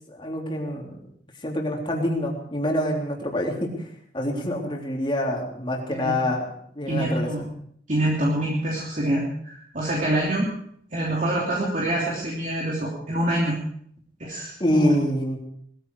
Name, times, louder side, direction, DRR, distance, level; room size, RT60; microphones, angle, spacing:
voice 1, 0.1-1.0 1.4-3.9 4.1-6.5 6.8-7.4 14.6-15.4, left 1 dB, 25° left, 0 dB, 3.5 m, -26 dB
voice 2, 6.9-7.4 7.9-10.5 10.9-13.6 14.2-14.9, right 1 dB, 45° right, -3 dB, 3.2 m, -26 dB
20.5 x 14.5 x 4.8 m, 0.65 s
head